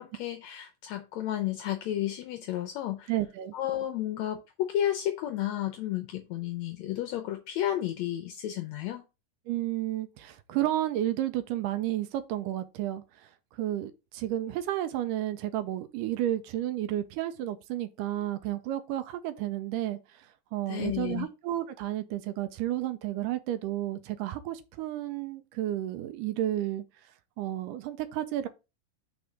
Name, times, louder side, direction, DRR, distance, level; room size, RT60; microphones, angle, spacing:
voice 1, 0.0-3.1 3.5-9.0 20.7-21.3, left 12 dB, 80° left, 1.6 m, -32 dB
voice 2, 3.1-3.5 9.5-13.3 13.5-26.8 27.4-28.5, right 13 dB, 85° right, 2.2 m, -32 dB
5.2 x 4.4 x 4.9 m
omnidirectional pair, 3.8 m